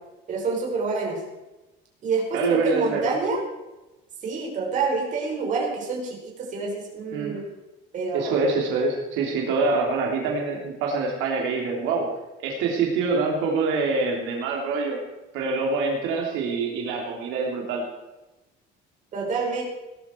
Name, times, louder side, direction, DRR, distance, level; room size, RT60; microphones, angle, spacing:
voice 1, 0.3-1.2 2.0-3.4 4.2-7.4 7.9-8.3 19.1-19.6, right 4 dB, 40° right, -1 dB, 5.1 m, -27 dB
voice 2, 2.3-3.2 7.1-7.4 8.1-12.1 12.4-15.0 15.3-17.8, right 4 dB, 80° right, 0 dB, 3.2 m, -25 dB
18.0 x 12.5 x 4.6 m, 1.1 s
cardioid pair, 165°, 20 cm